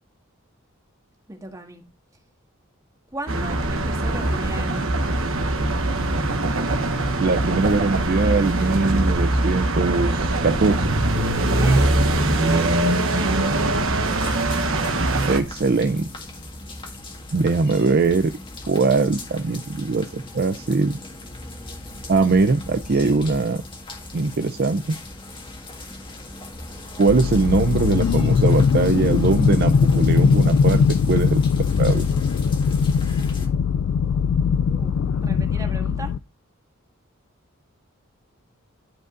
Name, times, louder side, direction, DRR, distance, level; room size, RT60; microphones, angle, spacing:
voice 1, 1.3-1.8 3.1-5.3 11.4-13.5 34.6-36.1, right 1 dB, 15° right, 1.7 m, -37 dB
sound 1, 3.3-15.4, right 1 dB, 70° right, 1.2 m, -22 dB
voice 2, 7.2-10.9 15.3-16.1 17.3-18.3 18.7-20.9 22.1-23.6 24.1-25.0 27.0-31.4 31.8-32.1, right 3 dB, 45° right, 0.5 m, -21 dB
sound 2, 14.0-33.5, left 1 dB, 25° left, 1.6 m, -38 dB
sound 3, 27.1-36.2, left 6 dB, 75° left, 0.3 m, -20 dB
12.0 x 5.2 x 2.5 m
head